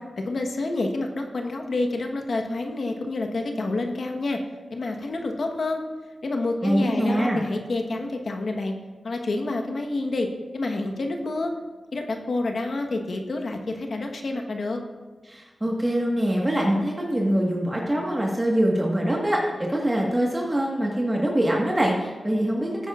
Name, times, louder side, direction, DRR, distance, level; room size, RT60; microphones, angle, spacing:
voice 1, 0.2-4.4 4.7-5.8 6.2-8.7 9.0-11.5 11.9-14.8, left 2 dB, 65° left, 3 dB, 1.1 m, -28 dB
voice 2, 6.6-7.4 15.3-22.9, right 1 dB, 20° right, -2 dB, 1.4 m, -24 dB
15.0 x 9.0 x 2.4 m, 1.4 s
cardioid pair, 60°, 0 cm